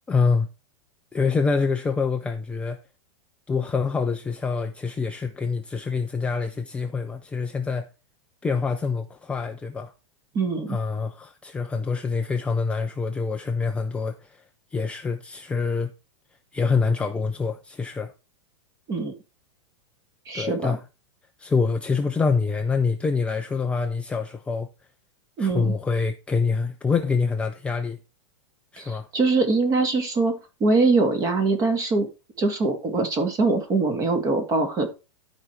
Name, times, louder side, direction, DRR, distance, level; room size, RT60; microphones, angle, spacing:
voice 1, 0.1-0.5 1.1-2.8 3.5-7.9 8.4-9.9 10.7-14.4 14.7-15.9 16.5-18.1 20.3-20.8 21.4-24.7 25.4-28.0 28.7-29.1, left 4 dB, 5° left, 0.5 m, -25 dB
voice 2, 10.3-10.8 18.9-19.1 20.3-20.8 25.4-25.7 28.8-30.3 30.6-32.1 32.4-34.9, right 3 dB, 25° right, 2.0 m, -23 dB
12.5 x 5.0 x 4.4 m
supercardioid pair, 155°, 15 cm